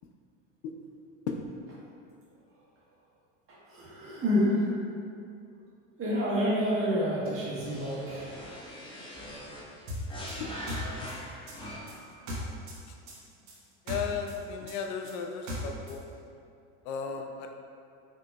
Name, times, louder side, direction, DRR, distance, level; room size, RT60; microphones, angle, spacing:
voice 1, 3.7-4.7 6.0-8.4, equal, 35° right, -7 dB, 1.4 m, -28 dB
sound 1, 7.6-12.1, equal, 15° left, 0.8 m, -42 dB
sound 2, 9.9-12.8 13.1-16.0, left 1 dB, 50° right, 1.1 m, -37 dB
voice 2, 10.4-11.1 13.9-16.0 16.9-17.5, left 6 dB, 65° left, 3 dB, 0.5 m, -35 dB
5.5 x 2.8 x 2.2 m, 2.5 s
supercardioid pair, 110°, 37 cm